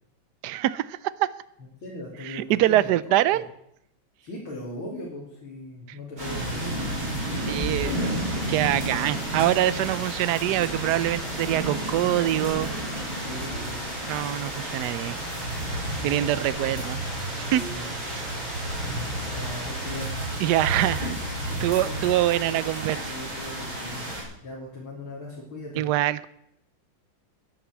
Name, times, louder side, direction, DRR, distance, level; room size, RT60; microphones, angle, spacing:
voice 1, 0.4-1.3 2.2-3.4 7.5-8.1 8.5-12.7 14.1-15.2 15.7-17.0 17.4-18.3 20.4-21.1 21.6-23.2 25.8-26.3, right 14 dB, 70° right, 17 dB, 1.0 m, -25 dB
voice 2, 1.6-2.8 3.0-3.4 4.2-8.3 13.1-13.9 16.5-16.8 17.5-18.2 19.3-20.1 21.4-21.6 21.8-22.0 23.0-24.2 24.4-25.9, left 1 dB, 70° left, -4 dB, 3.7 m, -39 dB
sound 1, 6.2-24.2, right 1 dB, 40° right, 5.9 m, -31 dB
sound 2, 7.9-20.0, equal, ahead, 2.9 m, -42 dB
11.5 x 11.0 x 7.5 m, 0.77 s
omnidirectional pair, 2.3 m